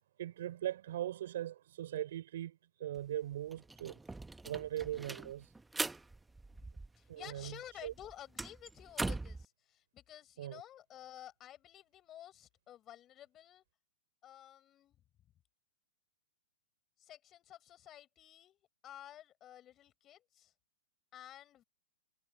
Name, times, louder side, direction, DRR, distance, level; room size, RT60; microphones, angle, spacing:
voice 1, 0.2-4.0 4.4-5.5 7.1-7.6 7.8-7.9 10.4-10.6, right 12 dB, 65° right, 4.7 m, -40 dB
sound 1, 3.0-3.1 3.3-7.2 7.5-9.4, right 2 dB, 5° right, 0.8 m, -41 dB
voice 2, 7.0-13.6 14.2-15.0 17.0-20.5 21.1-21.6, left 12 dB, 25° left, 5.7 m, -53 dB
hypercardioid pair, 145°, 0 cm